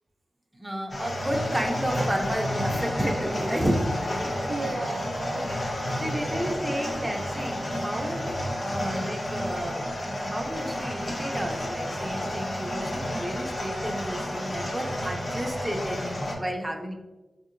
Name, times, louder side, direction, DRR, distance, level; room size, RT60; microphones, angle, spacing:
voice 1, 0.5-3.9 6.0-16.9, equal, 10° right, 1 dB, 0.5 m, -32 dB
sound 1, 0.9-16.3, left 1 dB, 40° left, 0.7 m, -31 dB
voice 2, 4.5-6.0 6.2-6.6, right 3 dB, 80° right, 3 dB, 0.3 m, -36 dB
4.0 x 2.7 x 2.5 m, 1.1 s
cardioid pair, 70°, 0 cm